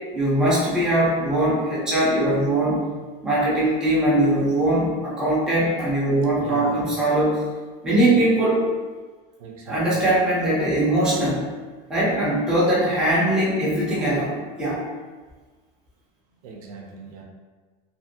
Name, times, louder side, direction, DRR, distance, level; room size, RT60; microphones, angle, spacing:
voice 1, 0.1-2.8 3.2-7.4 7.8-8.7 9.7-11.4 11.9-14.8, right 1 dB, 5° right, -8 dB, 0.5 m, -21 dB
voice 2, 6.4-7.0 9.4-10.1 16.4-17.2, right 4 dB, 85° right, 1 dB, 0.6 m, -38 dB
2.6 x 2.6 x 2.6 m, 1.4 s
cardioid pair, 180°, 19 cm